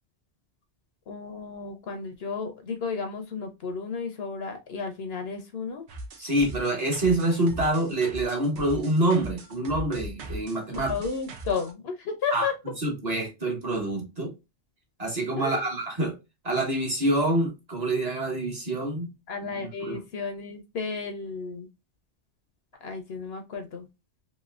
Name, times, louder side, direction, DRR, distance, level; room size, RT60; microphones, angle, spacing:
voice 1, 1.1-5.9 10.8-12.5 15.4-15.7 19.3-21.7 22.8-23.9, left 5 dB, 65° left, 0.8 m, -33 dB
sound 1, 5.9-11.7, right 1 dB, 70° right, 1.0 m, -39 dB
voice 2, 6.2-10.9 12.3-12.5 12.8-14.3 15.0-16.1 16.4-19.1 19.4-20.0, right 1 dB, 35° right, 1.0 m, -26 dB
3.1 x 2.7 x 2.3 m
omnidirectional pair, 1.2 m